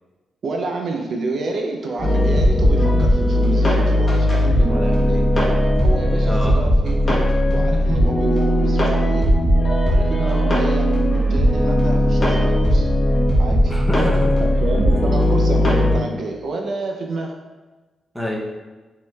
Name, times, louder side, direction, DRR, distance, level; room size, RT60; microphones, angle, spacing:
voice 1, 0.4-5.3 5.8-7.2 7.5-9.3 9.9-12.9 13.4-13.7 14.6-17.3, right 3 dB, 55° right, 2 dB, 0.4 m, -29 dB
sound 1, 2.0-16.0, equal, 25° left, 1.0 m, -17 dB
voice 2, 10.2-10.6 13.7-14.4 15.0-15.2 18.1-18.4, equal, ahead, -3 dB, 0.6 m, -27 dB
5.1 x 3.6 x 2.3 m, 1.2 s
wide cardioid pair, 155°, 0 cm